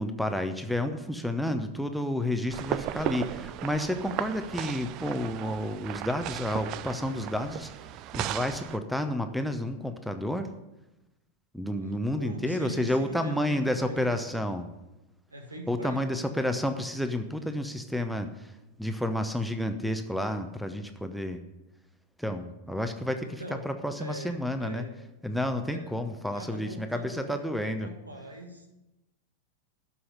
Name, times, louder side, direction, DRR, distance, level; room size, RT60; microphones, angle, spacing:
voice 1, 0.0-7.7 8.1-10.5 11.5-14.7 15.7-18.5 18.8-21.4 22.2-24.9 25.2-27.9, left 1 dB, ahead, 8 dB, 0.8 m, -30 dB
sound 1, 2.5-8.8, right 13 dB, 40° right, 0.5 m, -36 dB
voice 2, 11.9-14.2 15.3-16.1 23.2-23.7 24.0-24.9 25.7-26.0 26.3-28.7, right 1 dB, 80° right, 3 dB, 2.0 m, -42 dB
13.0 x 5.7 x 8.1 m, 0.98 s
figure-of-eight pair, 90°, 0 cm